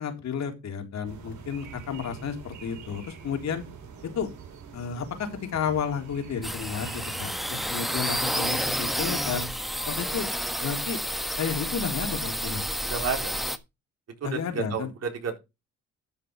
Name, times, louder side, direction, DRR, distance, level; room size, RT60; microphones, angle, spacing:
voice 1, 0.0-3.6 4.0-4.3 4.7-9.5 9.9-10.3 10.6-11.0 11.4-12.6 14.2-14.9, left 7 dB, 65° left, 5 dB, 3.5 m, -32 dB
sound 1, 1.0-9.0, right 6 dB, 75° right, 5.6 m, -45 dB
sound 2, 6.4-13.6, equal, ahead, 1.3 m, -30 dB
voice 2, 12.8-13.3 14.2-15.4, right 6 dB, 55° right, 4 dB, 4.2 m, -31 dB
12.5 x 6.0 x 5.3 m, 0.25 s
cardioid pair, 90°, 30 cm